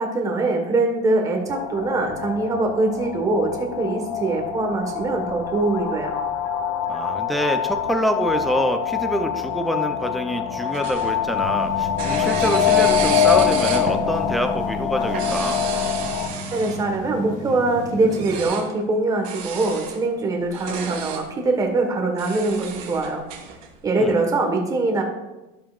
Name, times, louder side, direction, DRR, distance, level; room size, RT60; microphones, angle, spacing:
voice 1, 0.0-6.1 16.5-23.2 23.8-25.0, right 2 dB, 20° right, 2 dB, 1.4 m, -23 dB
sound 1, 1.5-16.3, left 8 dB, 80° left, 0.9 m, -24 dB
voice 2, 6.9-15.6 24.0-24.2, equal, ahead, 6 dB, 0.5 m, -26 dB
sound 2, 10.6-11.6 12.0-14.0 15.0-17.0 18.1-18.7 19.2-20.0 20.4-21.2 22.2-23.7, right 6 dB, 60° right, 2.3 m, -32 dB
sound 3, 11.3-18.5, left 3 dB, 40° left, 1.2 m, -33 dB
16.0 x 5.7 x 2.4 m, 1.0 s
cardioid pair, 155°, 18 cm